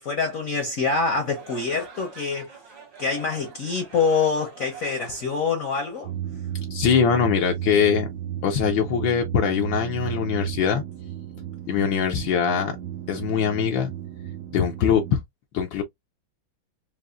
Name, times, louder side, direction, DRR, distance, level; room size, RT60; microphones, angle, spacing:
voice 1, 0.0-2.6 3.0-6.1, left 4 dB, 50° left, 1.1 m, -25 dB
sound 1, 1.2-6.4, right 6 dB, 50° right, 1.8 m, -46 dB
sound 2, 6.0-15.2, right 10 dB, 75° right, 1.2 m, -33 dB
voice 2, 6.7-8.1 8.4-10.8 11.7-12.8 13.1-13.9 14.5-15.2 15.5-15.8, left 7 dB, 75° left, 1.4 m, -22 dB
4.8 x 2.5 x 2.4 m
omnidirectional pair, 2.2 m